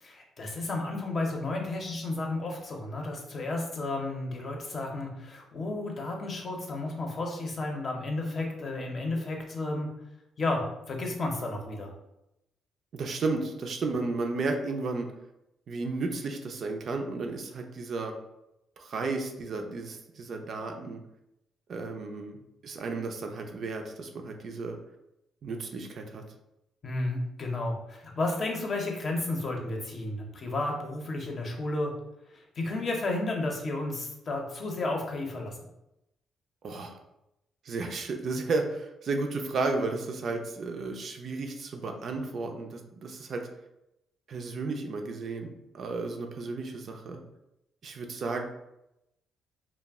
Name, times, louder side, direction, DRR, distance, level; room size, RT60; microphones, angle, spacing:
voice 1, 0.0-9.9 10.4-11.9 26.8-31.9 32.3-35.5, left 2 dB, 45° left, 1 dB, 0.6 m, -32 dB
voice 2, 12.9-15.1 15.7-18.1 18.8-21.0 21.7-24.8 25.4-26.2 36.6-37.0 37.6-43.5 44.3-47.2 47.8-48.4, right 3 dB, 55° right, 4 dB, 0.4 m, -33 dB
2.3 x 2.1 x 3.4 m, 0.87 s
cardioid pair, 90°, 0 cm